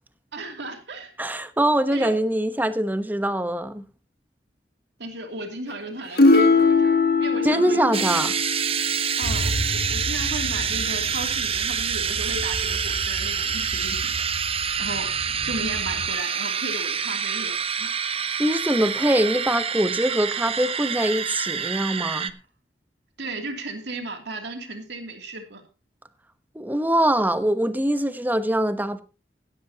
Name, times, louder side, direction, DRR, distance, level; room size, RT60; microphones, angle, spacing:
voice 1, 0.3-1.1 1.9-2.2 5.0-7.8 9.2-14.1 14.8-15.1 15.4-17.9 23.2-25.6, right 2 dB, 70° right, 2.8 m, -35 dB
voice 2, 1.2-3.8 7.4-8.3 18.4-22.3 26.5-29.0, right 1 dB, 10° right, 1.0 m, -23 dB
sound 1, 6.2-9.8 12.4-12.8, left 3 dB, 60° left, 1.6 m, -21 dB
sound 2, 7.9-22.3, right 7 dB, 35° right, 0.7 m, -27 dB
sound 3, 9.2-16.1, equal, 85° left, 3.6 m, -34 dB
16.0 x 13.5 x 2.9 m
head